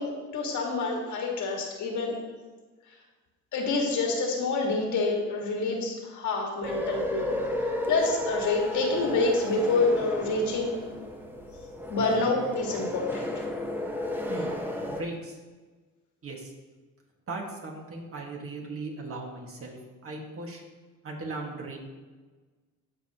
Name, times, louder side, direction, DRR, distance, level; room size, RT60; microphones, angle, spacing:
voice 1, 0.0-2.2 3.5-7.4 7.9-10.8 11.9-13.4, left 3 dB, 75° left, 0 dB, 1.9 m, -27 dB
sound 1, 6.6-15.0, left 1 dB, 5° right, 1.0 m, -33 dB
voice 2, 14.9-15.4 16.2-16.5 17.3-19.8 20.0-20.6 21.0-21.8, right 3 dB, 45° right, 0 dB, 1.8 m, -37 dB
13.0 x 4.9 x 3.0 m, 1.3 s
cardioid pair, 90°, 30 cm